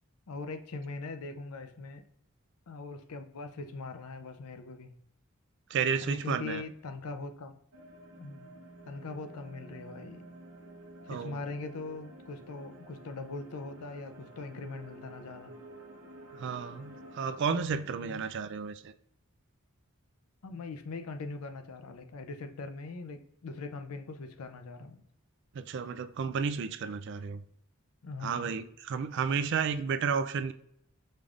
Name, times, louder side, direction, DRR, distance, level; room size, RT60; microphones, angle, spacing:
voice 1, 0.3-2.0 2.7-4.9 6.0-7.6 8.2-8.5 8.9-10.3 11.1-15.5 18.0-18.2 20.4-25.0 28.0-28.5, left 3 dB, 90° left, 0.5 m, -41 dB
voice 2, 5.7-6.6 11.1-11.4 16.3-18.9 25.5-27.4 28.2-30.5, right 6 dB, 55° right, 0.3 m, -32 dB
sound 1, 7.7-17.5, right 1 dB, 70° right, 0.8 m, -51 dB
5.3 x 3.4 x 2.4 m
head